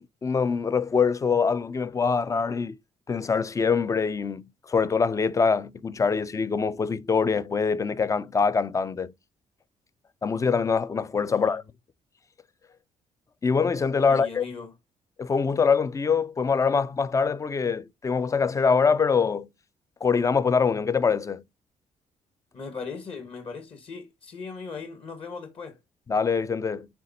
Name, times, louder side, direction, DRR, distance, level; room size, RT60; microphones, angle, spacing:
voice 1, 0.0-2.8 3.1-9.1 10.2-11.6 13.4-14.4 15.2-19.5 20.0-21.4 26.1-26.9, left 5 dB, 25° left, 0.5 m, -24 dB
voice 2, 14.1-14.7 22.5-25.8, left 5 dB, 45° left, 1.6 m, -38 dB
9.0 x 3.2 x 4.2 m
cardioid pair, 130°, 13 cm